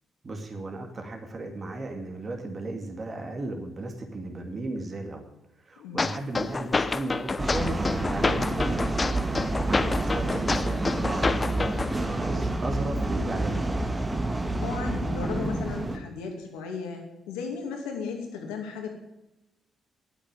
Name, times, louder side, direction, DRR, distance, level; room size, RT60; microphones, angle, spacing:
voice 1, 0.2-5.2 5.6-8.9 9.5-13.8, right 2 dB, 40° right, 4 dB, 2.3 m, -35 dB
voice 2, 5.8-6.2 14.6-18.9, left 5 dB, 85° left, 2 dB, 2.6 m, -35 dB
sound 1, 6.0-12.0, left 3 dB, 30° left, 0.7 m, -28 dB
sound 2, 7.4-16.0, right 2 dB, 20° right, 1.7 m, -28 dB
9.8 x 8.2 x 8.9 m, 0.94 s
supercardioid pair, 55°, 0 cm